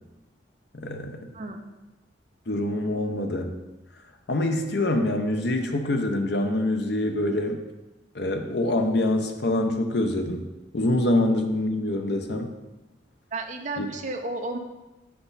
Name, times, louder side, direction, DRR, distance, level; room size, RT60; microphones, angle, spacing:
voice 1, 0.7-1.3 2.5-3.5 4.3-7.6 8.1-12.5 13.8-13.9, left 1 dB, 60° left, 5 dB, 0.7 m, -25 dB
voice 2, 1.3-1.7 13.3-14.6, right 2 dB, 40° right, 4 dB, 0.7 m, -32 dB
6.9 x 6.0 x 4.0 m, 1.1 s
head